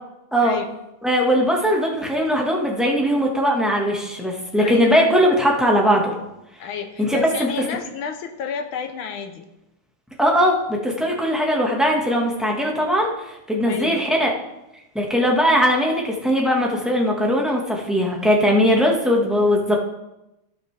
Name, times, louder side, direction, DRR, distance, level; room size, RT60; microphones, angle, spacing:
voice 1, 1.0-6.2 7.0-7.5 10.2-13.1 13.5-14.3 14.9-19.8, equal, ahead, -1 dB, 0.9 m, -19 dB
voice 2, 4.6-5.0 6.6-9.4 13.6-14.1, left 6 dB, 75° left, 7 dB, 1.5 m, -31 dB
16.0 x 5.8 x 3.3 m, 0.92 s
omnidirectional pair, 2.4 m